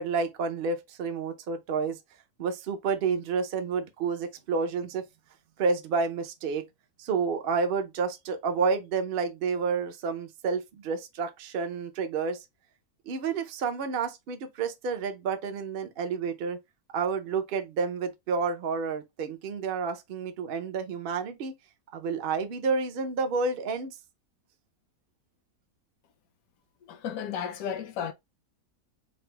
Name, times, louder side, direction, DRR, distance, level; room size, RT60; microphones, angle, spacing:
voice 1, 0.0-2.0 2.4-5.0 5.6-6.7 7.0-12.4 13.1-16.6 16.9-21.5 21.9-24.0, right 5 dB, 55° right, 0.6 m, -30 dB
voice 2, 26.9-28.1, left 8 dB, 70° left, 1.1 m, -33 dB
4.0 x 2.0 x 4.3 m
omnidirectional pair, 1.6 m